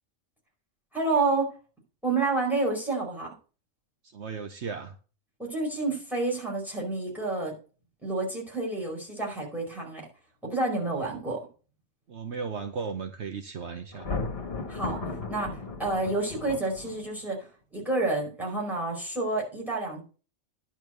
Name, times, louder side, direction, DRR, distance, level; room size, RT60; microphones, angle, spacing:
voice 1, 0.9-1.5 2.0-3.3 5.4-7.5 8.0-10.0 10.4-11.4 14.7-17.5 17.7-20.0, right 3 dB, ahead, -1 dB, 4.8 m, -29 dB
voice 2, 4.0-5.0 12.1-14.1, right 5 dB, 65° right, 6 dB, 1.2 m, -36 dB
Thunder, 13.9-17.3, left 3 dB, 50° left, 1.7 m, -35 dB
10.5 x 4.6 x 7.9 m, 0.37 s
omnidirectional pair, 1.3 m